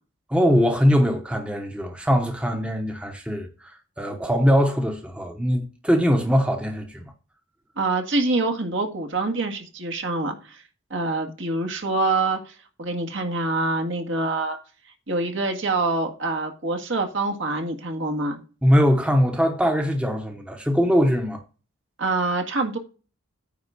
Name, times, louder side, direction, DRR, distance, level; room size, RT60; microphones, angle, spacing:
voice 1, 0.3-7.1 18.6-21.4, equal, 5° right, 0.9 m, -21 dB
voice 2, 7.8-10.6 10.9-14.6 15.1-18.4 22.0-22.8, right 2 dB, 65° right, 1.8 m, -25 dB
9.5 x 3.7 x 6.8 m
head